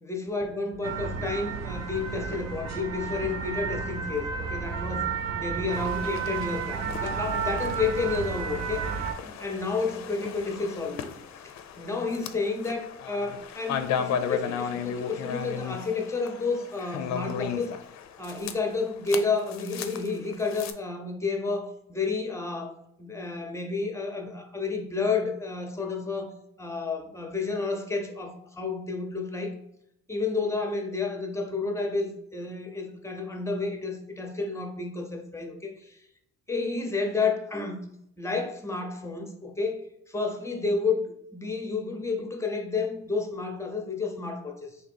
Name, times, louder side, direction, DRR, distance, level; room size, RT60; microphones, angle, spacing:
voice 1, 0.0-5.1 5.3-8.9 9.2-11.1 11.8-17.7 18.2-26.3 26.6-29.5 30.1-36.0 36.5-37.9 38.2-44.8, left 4 dB, 10° left, 3 dB, 0.7 m, -31 dB
sound 1, 0.8-9.1, right 6 dB, 60° right, 0.5 m, -32 dB
sound 2, 5.7-20.7, left 7 dB, 65° left, 0.5 m, -36 dB
2.9 x 2.8 x 4.2 m, 0.77 s
cardioid pair, 90°, 30 cm